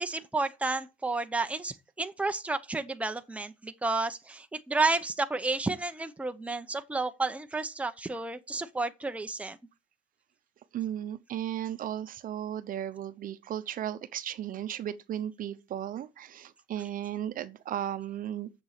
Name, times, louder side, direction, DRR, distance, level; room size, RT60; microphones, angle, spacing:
voice 1, 0.0-9.6, right 3 dB, 10° right, 0.8 m, -31 dB
voice 2, 10.7-18.5, right 10 dB, 55° right, 0.8 m, -35 dB
7.2 x 7.1 x 6.6 m
cardioid pair, 110°, 17 cm